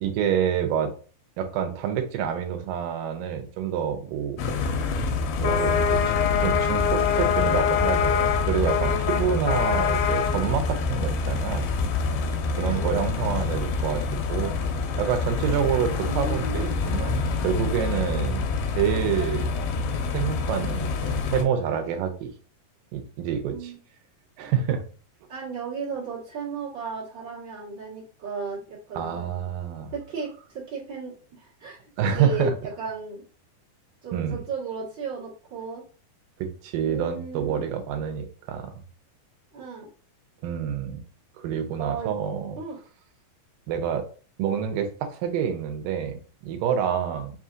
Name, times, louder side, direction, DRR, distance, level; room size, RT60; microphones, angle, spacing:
voice 1, 0.0-0.9 1.4-4.4 5.4-11.7 12.6-14.5 15.0-19.5 20.1-22.3 22.9-23.7 24.4-24.8 28.9-29.9 32.0-32.5 34.1-34.4 36.4-38.7 40.4-41.0 41.4-42.6 43.7-44.1 44.4-47.3, right 8 dB, 80° right, 6 dB, 2.2 m, -27 dB
sound 1, 4.4-21.4, left 5 dB, 90° left, 2.4 m, -25 dB
voice 2, 12.5-12.9 15.8-16.7 23.5-23.8 25.3-29.3 29.9-31.8 32.0-33.2 34.0-35.8 36.8-37.7 39.5-39.9 41.8-42.1 42.6-42.8, right 4 dB, 50° right, -7 dB, 1.4 m, -35 dB
5.5 x 2.8 x 2.4 m, 0.39 s
omnidirectional pair, 4.1 m